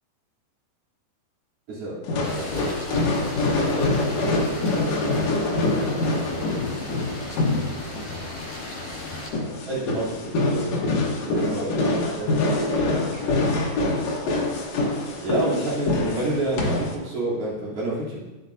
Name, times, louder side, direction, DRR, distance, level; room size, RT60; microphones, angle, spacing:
voice 1, 1.7-2.0 2.3-2.5 3.4-4.8 9.7-12.3 15.2-18.2, right 2 dB, 35° right, -8 dB, 3.7 m, -29 dB
sound 1, 2.0-16.9, left 2 dB, 75° left, 1.5 m, -25 dB
sound 2, 2.2-9.3, left 2 dB, 60° left, 4.3 m, -36 dB
voice 2, 6.4-8.3 9.4-10.1 11.8-13.9, right 3 dB, 75° right, -3 dB, 3.5 m, -44 dB
15.0 x 8.6 x 2.7 m, 1.1 s
omnidirectional pair, 5.1 m